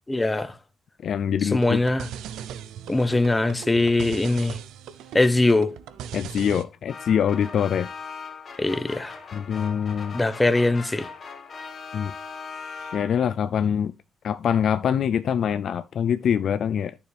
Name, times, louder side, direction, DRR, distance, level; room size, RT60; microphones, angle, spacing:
voice 1, 0.1-0.5 1.4-2.1 2.9-4.6 5.1-5.7 8.6-9.1 10.1-11.1, left 2 dB, 15° left, 0.8 m, -22 dB
voice 2, 1.0-1.8 6.1-7.9 9.3-10.2 11.9-12.1 12.9-13.9 14.2-16.9, left 8 dB, 65° left, 0.4 m, -24 dB
sound 1, 1.5-6.6, right 9 dB, 85° right, 0.6 m, -39 dB
sound 2, 6.9-13.4, left 5 dB, 45° left, 1.8 m, -39 dB
9.1 x 6.9 x 3.4 m
cardioid pair, 90°, 0 cm